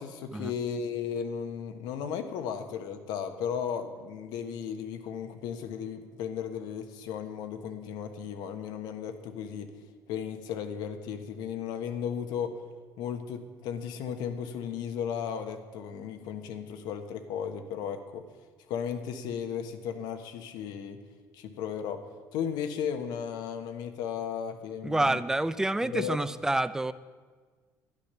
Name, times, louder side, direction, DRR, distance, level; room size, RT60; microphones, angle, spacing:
voice 1, 0.0-9.7 10.1-12.5 13.0-18.2 18.7-21.0 21.3-22.0 22.3-25.2 25.8-26.2, left 8 dB, 80° left, 8 dB, 1.2 m, -35 dB
voice 2, 24.8-26.9, right 2 dB, 5° right, 15 dB, 0.5 m, -28 dB
12.0 x 10.0 x 6.7 m, 1.5 s
cardioid pair, 120°, 7 cm